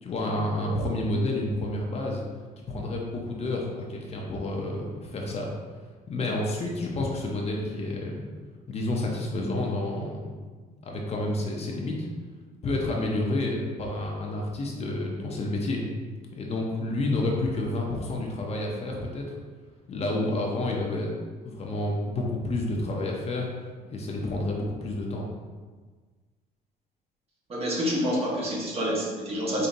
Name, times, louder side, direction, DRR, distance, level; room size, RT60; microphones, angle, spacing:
voice 1, 0.0-2.2 2.7-5.5 6.1-8.3 8.7-10.3 10.8-12.1 12.6-15.8 16.3-19.2 19.9-21.1 21.4-23.5 23.9-25.3, left 2 dB, 40° left, -1 dB, 0.7 m, -29 dB
voice 2, 27.5-29.7, equal, 35° right, -4 dB, 1.2 m, -28 dB
5.2 x 2.7 x 2.6 m, 1.4 s
cardioid pair, 110°, 17 cm